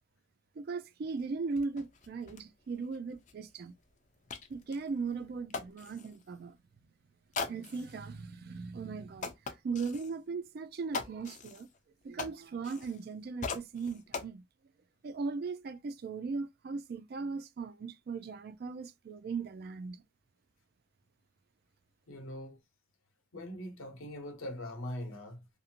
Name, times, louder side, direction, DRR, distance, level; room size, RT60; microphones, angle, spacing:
voice 1, 0.6-3.7 4.5-6.6 7.4-9.3 9.6-11.7 12.0-14.4 15.0-20.0, right 4 dB, 50° right, 0.3 m, -38 dB
sound 1, 1.2-1.3 1.5-6.2 7.3-8.0 8.6-8.7 9.2-10.1 10.9-13.1 13.4-14.3, left 4 dB, 35° left, 0.4 m, -42 dB
voice 2, 22.1-22.6 23.3-25.5, left 1 dB, 90° left, 0.8 m, -42 dB
2.5 x 2.5 x 2.7 m
head